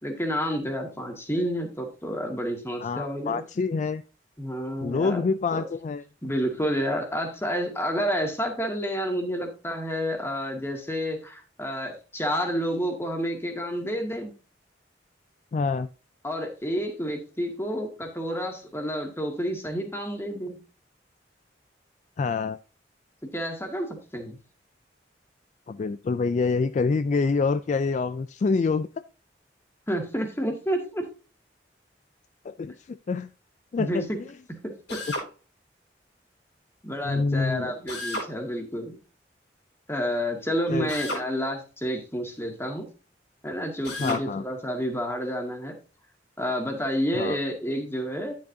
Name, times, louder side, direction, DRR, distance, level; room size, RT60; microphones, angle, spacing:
voice 1, 0.0-3.4 4.4-5.2 5.5-5.6 6.2-14.3 16.2-20.6 23.3-24.4 29.9-31.0 33.8-34.2 34.9-35.0 36.8-39.0 39.9-42.9 43.4-45.7 46.4-48.3, equal, 15° left, 3 dB, 1.8 m, -29 dB
voice 2, 2.8-4.0 4.8-6.0 15.5-15.9 22.2-22.6 25.7-28.9 32.4-33.3 33.7-34.1 34.9-35.0 37.0-37.8 40.7-40.9 44.0-44.4 47.1-47.4, left 4 dB, 40° left, 12 dB, 0.3 m, -26 dB
Drill, 34.9-35.3 37.9-38.3 40.9-41.3 43.8-44.2, left 1 dB, 70° left, 4.3 m, -32 dB
10.5 x 7.5 x 2.7 m, 0.33 s
head